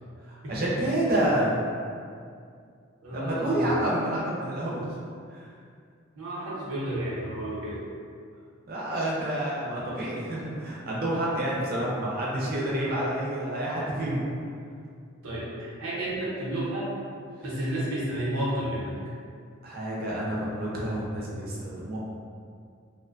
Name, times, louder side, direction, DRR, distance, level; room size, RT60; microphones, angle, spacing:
voice 1, 0.3-1.6 3.1-4.8 5.3-5.5 8.7-14.4 19.6-22.0, right 1 dB, 45° right, -5 dB, 0.4 m, -28 dB
voice 2, 3.0-3.7 6.1-7.8 15.2-16.9 17.4-18.9, right 1 dB, 90° right, -7 dB, 0.8 m, -31 dB
2.5 x 2.1 x 2.4 m, 2.3 s
head